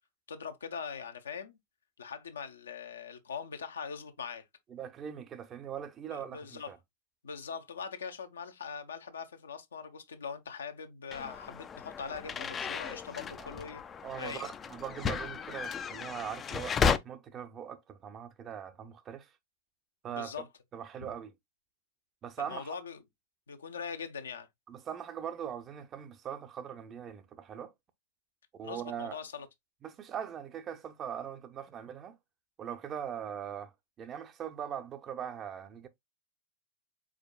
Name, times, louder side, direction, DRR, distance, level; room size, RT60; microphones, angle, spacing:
voice 1, 0.3-1.6 2.0-4.4 6.1-6.7 7.2-13.8 14.2-14.5 20.1-20.5 21.0-21.1 22.5-23.0 23.5-24.5 28.6-29.5, left 6 dB, 70° left, 0.8 m, -41 dB
voice 2, 4.7-6.8 13.4-13.5 14.0-19.3 20.0-20.4 20.7-21.3 22.2-22.8 24.7-27.7 28.5-29.2 29.8-32.2 32.6-33.7 34.0-35.9, right 9 dB, 30° right, 0.6 m, -41 dB
sound 1, 11.1-17.0, left 6 dB, 20° left, 0.4 m, -34 dB
4.9 x 4.3 x 2.2 m
figure-of-eight pair, 90°, 0 cm